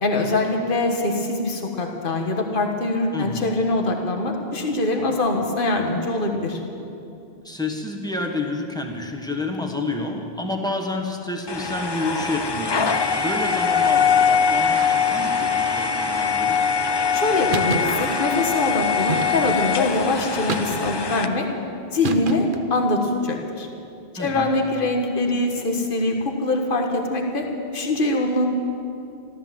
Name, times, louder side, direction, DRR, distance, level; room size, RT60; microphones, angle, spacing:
voice 1, 0.0-6.6 17.1-21.5 21.9-23.7 24.1-27.5 27.7-28.5, left 2 dB, 55° left, 3 dB, 1.6 m, -23 dB
voice 2, 3.1-3.5 7.4-16.6 24.2-24.5, left 2 dB, 5° left, 2 dB, 1.4 m, -29 dB
sound 1, 11.5-21.3, left 6 dB, 35° left, 0.5 m, -22 dB
sound 2, 17.5-17.9 19.1-19.6 20.5-21.1 22.0-22.7, right 4 dB, 55° right, 1.0 m, -28 dB
13.5 x 13.5 x 7.5 m, 2.7 s
omnidirectional pair, 1.1 m